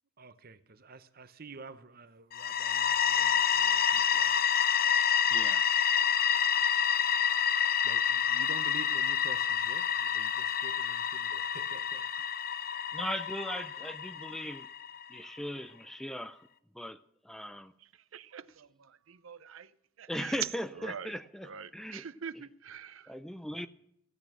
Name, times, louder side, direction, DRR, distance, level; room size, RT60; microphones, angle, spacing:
voice 1, 0.2-4.4 7.8-12.1, right 4 dB, 45° right, 0.8 m, -49 dB
sound 1, 2.3-15.0, left 8 dB, 45° left, 0.6 m, -28 dB
voice 2, 5.3-5.6 12.9-14.7 15.1-16.5 16.7-17.0 17.2-17.7 20.1-22.1 22.3-22.5 23.1-23.7, equal, ahead, 0.4 m, -38 dB
voice 3, 18.1-18.7 19.2-19.7 20.0-20.3 20.9-21.1 21.5-23.0, right 6 dB, 75° right, 0.6 m, -44 dB
16.0 x 8.9 x 6.1 m
head